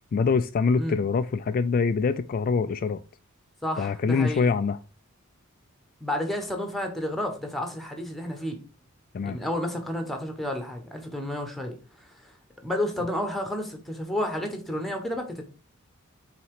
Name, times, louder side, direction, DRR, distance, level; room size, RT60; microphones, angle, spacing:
voice 1, 0.1-3.0 3.8-4.8 9.1-9.4, left 5 dB, 40° left, 0.3 m, -24 dB
voice 2, 3.6-4.5 6.0-8.6 9.2-11.7 12.6-15.5, left 1 dB, ahead, 1.2 m, -31 dB
5.6 x 4.2 x 4.8 m
head